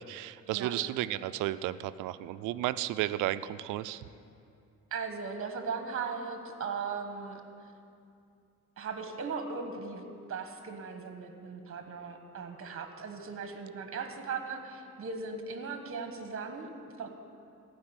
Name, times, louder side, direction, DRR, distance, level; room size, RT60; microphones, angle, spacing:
voice 1, 0.0-4.1, right 14 dB, 90° right, 14 dB, 0.5 m, -33 dB
voice 2, 4.9-7.4 8.8-16.7 17.0-17.1, right 5 dB, 45° right, 6 dB, 1.4 m, -38 dB
15.0 x 5.1 x 8.9 m, 2.5 s
cardioid pair, 90°, 30 cm